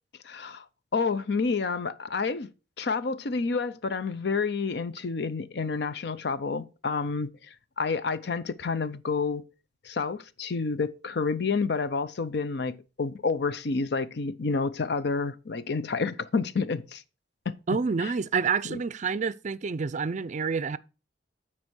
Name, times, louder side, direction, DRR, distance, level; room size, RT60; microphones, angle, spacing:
voice 1, 0.2-0.6 0.9-2.5 2.8-9.5 9.8-17.0 17.5-17.6 18.0-18.1 18.7-18.8, left 4 dB, 65° left, 0.6 m, -29 dB
voice 2, 17.7-20.8, right 5 dB, 40° right, 0.4 m, -28 dB
9.7 x 4.3 x 6.2 m
head